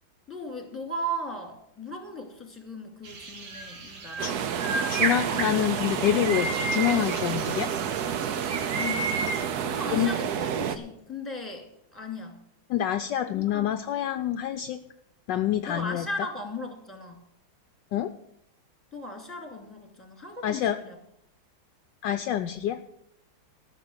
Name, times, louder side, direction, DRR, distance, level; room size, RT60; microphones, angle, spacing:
voice 1, 0.3-4.5 8.7-9.1 9.6-12.4 13.3-13.7 15.6-17.2 18.9-21.0, equal, 5° left, 3 dB, 2.4 m, -37 dB
sound 1, 3.0-9.4, right 3 dB, 90° right, 2.6 m, -33 dB
sound 2, 4.2-10.8, right 8 dB, 60° right, 1.2 m, -30 dB
voice 2, 4.9-7.7 9.9-10.1 12.7-14.8 15.3-16.1 17.9-18.1 20.4-20.8 22.0-22.8, left 11 dB, 70° left, 8 dB, 1.2 m, -27 dB
13.5 x 6.8 x 8.0 m, 0.77 s
omnidirectional pair, 2.1 m